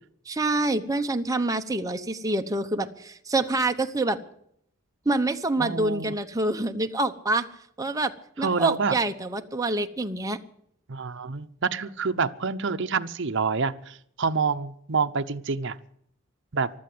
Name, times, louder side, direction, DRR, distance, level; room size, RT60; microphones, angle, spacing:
voice 1, 0.3-4.2 5.1-7.5 7.8-8.1 8.4-10.4, right 2 dB, 15° right, 6 dB, 0.9 m, -26 dB
voice 2, 5.6-6.2 8.4-9.0 10.9-15.8 16.5-16.7, right 5 dB, 60° right, 9 dB, 0.8 m, -27 dB
15.0 x 12.0 x 7.9 m, 0.69 s
head